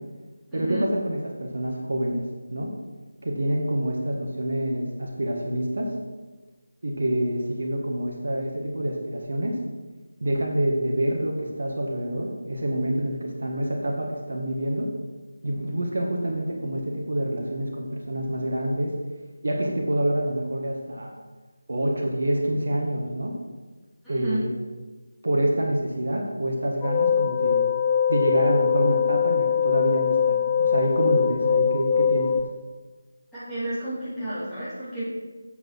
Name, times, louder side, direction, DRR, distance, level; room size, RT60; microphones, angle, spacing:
voice 1, 0.5-2.7 3.2-5.9 6.8-9.6 10.2-14.9 15.4-18.9 19.4-21.1 21.7-23.4 24.1-24.5 25.2-27.6 28.1-32.4, right 1 dB, 55° right, 0 dB, 1.8 m, -27 dB
voice 2, 24.0-24.4 33.3-35.0, right 1 dB, ahead, -17 dB, 3.1 m, -31 dB
sound 1, 26.8-32.4, left 8 dB, 20° left, 0.7 m, -22 dB
8.1 x 8.0 x 4.7 m, 1.3 s
figure-of-eight pair, 160°, 0 cm